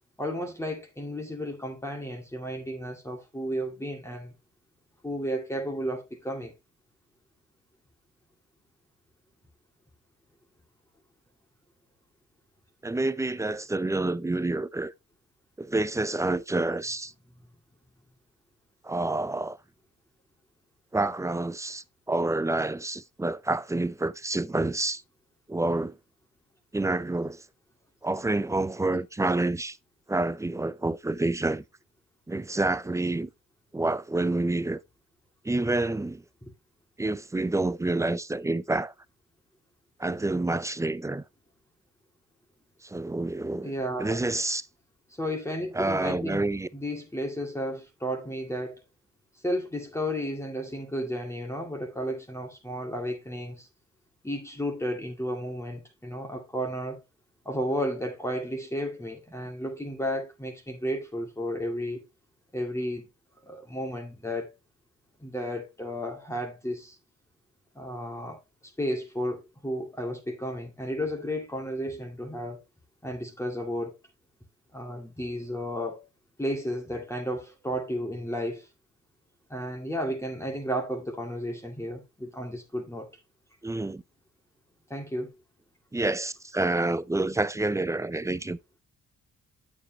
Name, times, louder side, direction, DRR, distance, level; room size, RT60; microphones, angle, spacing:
voice 1, 0.2-4.3 5.0-6.5 43.6-44.2 45.2-48.9 49.4-53.7 54.2-57.0 57.5-62.0 62.5-63.1 63.5-64.5 65.2-67.0 67.7-68.4 68.8-72.6 73.0-74.0 74.7-76.1 76.4-78.7 79.5-83.1 84.9-85.3, equal, 10° left, 2.1 m, -33 dB
voice 2, 12.8-14.9 15.6-17.1 18.8-19.6 20.9-25.0 25.5-26.0 26.7-27.4 28.0-29.8 30.1-31.6 32.3-33.3 33.7-34.8 35.4-36.2 37.0-38.9 40.0-41.2 42.8-43.7 44.0-44.6 45.7-46.7 83.6-84.0 85.9-88.6, right 2 dB, 10° right, 0.5 m, -28 dB
8.3 x 7.4 x 2.8 m
cardioid pair, 90°, 30 cm